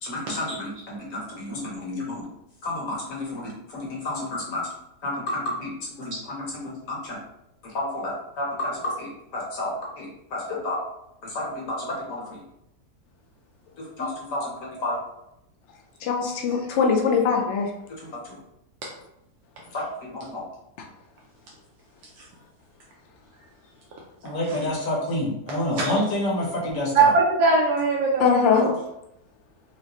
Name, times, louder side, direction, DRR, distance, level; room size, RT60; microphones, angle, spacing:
voice 1, 0.0-2.3 2.6-4.7 5.0-7.2 7.6-10.8 11.2-12.4 13.8-15.0 18.0-18.4 19.7-20.4 24.2-27.1, left 1 dB, 60° left, -3 dB, 1.1 m, -30 dB
voice 2, 16.0-17.7 28.2-28.6, left 6 dB, 80° left, 1 dB, 0.6 m, -21 dB
voice 3, 26.9-28.7, right 3 dB, 80° right, -2 dB, 1.2 m, -21 dB
4.7 x 2.0 x 2.9 m, 0.84 s
omnidirectional pair, 1.7 m